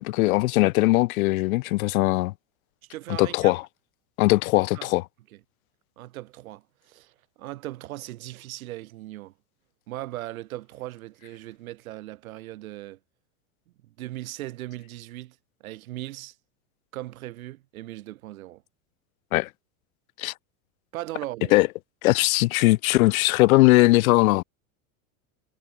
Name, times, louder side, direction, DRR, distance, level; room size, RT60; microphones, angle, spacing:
voice 1, 0.0-2.3 3.2-3.6 4.2-5.0 19.3-19.5 20.2-20.3 21.5-21.7 22.0-24.4, left 20 dB, 80° left, 0.7 m, -20 dB
voice 2, 2.9-3.6 4.7-4.9 6.0-9.3 9.9-13.0 13.8-15.4 15.6-16.4 16.9-18.6 20.9-21.6, right 16 dB, 80° right, 5.7 m, -38 dB
supercardioid pair, 145°, 41 cm